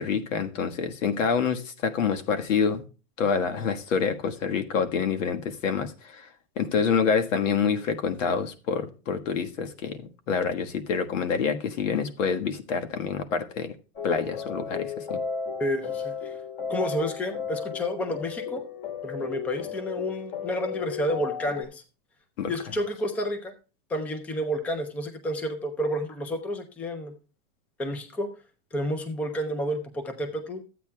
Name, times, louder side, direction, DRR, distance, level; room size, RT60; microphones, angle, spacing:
voice 1, 0.0-2.8 3.2-6.3 6.6-13.7 14.0-15.2 22.4-22.5, left 6 dB, 90° left, 9 dB, 1.5 m, -27 dB
sound 1, 14.0-21.6, left 6 dB, 40° left, 2.0 m, -34 dB
voice 2, 15.6-16.4 16.7-18.6 19.0-21.8 22.5-23.5 23.9-27.1 27.8-28.3 28.7-30.6, equal, 5° left, 9 dB, 0.4 m, -30 dB
14.5 x 8.4 x 2.2 m, 0.32 s
supercardioid pair, 160°, 37 cm